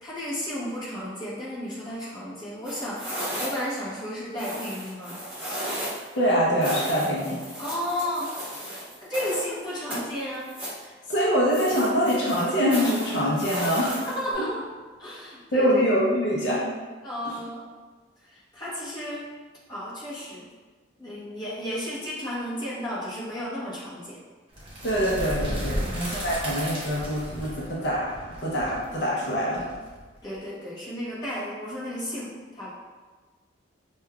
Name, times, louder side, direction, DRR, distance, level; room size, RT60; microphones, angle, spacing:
voice 1, 0.0-5.2 7.6-8.3 9.0-10.5 10.8-10.9 14.0-14.6 15.0-15.8 17.0-17.6 18.3-19.3 19.7-20.5 21.0-24.2 25.7-25.9 30.2-32.7, equal, 20° left, -8 dB, 0.9 m, -33 dB
sound 1, 2.6-3.8 4.4-6.1 6.6-9.5 9.9-10.8 11.5-14.3, equal, 10° right, 1.1 m, -34 dB
voice 2, 6.2-7.4 11.1-14.1 14.3-14.5 15.5-16.6 17.2-17.4 24.8-28.1 28.4-29.6, equal, 60° left, -5 dB, 0.6 m, -24 dB
sound 2, 24.5-30.4, equal, 25° right, 0.8 m, -34 dB
5.3 x 2.3 x 2.3 m, 1.4 s
head